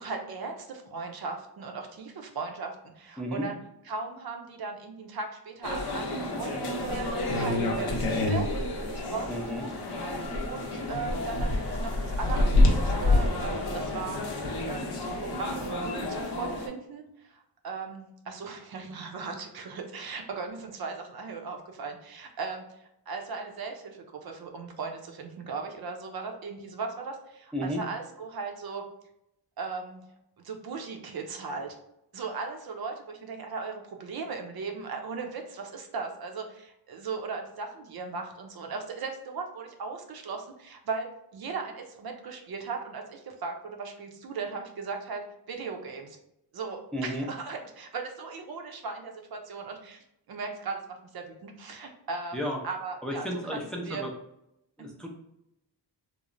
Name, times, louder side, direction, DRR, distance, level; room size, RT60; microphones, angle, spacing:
voice 1, 0.0-3.6 3.8-8.5 8.9-9.7 10.5-14.2 14.7-28.8 29.6-30.0 30.4-31.8 32.1-46.2 46.5-53.6 53.8-54.0 54.8-54.9, right 4 dB, 60° right, 3 dB, 0.5 m, -38 dB
voice 2, 3.2-3.5 9.3-9.7 27.5-27.8 46.9-47.3 52.3-52.6 53.0-54.1 54.8-55.1, equal, ahead, 0 dB, 0.4 m, -32 dB
sound 1, 5.6-16.7, left 2 dB, 65° left, 0.7 m, -28 dB
3.0 x 2.0 x 2.4 m, 0.83 s
cardioid pair, 75°, 42 cm